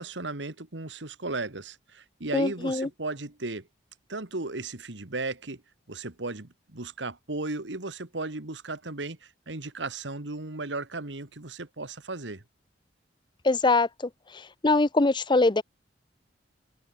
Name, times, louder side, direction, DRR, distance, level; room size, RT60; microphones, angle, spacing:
voice 1, 0.0-3.7 4.1-5.6 5.9-12.4, right 3 dB, 75° right, 2.0 m, -35 dB
voice 2, 2.3-2.9 13.4-13.9 14.6-15.6, left 3 dB, 25° left, 0.7 m, -22 dB
head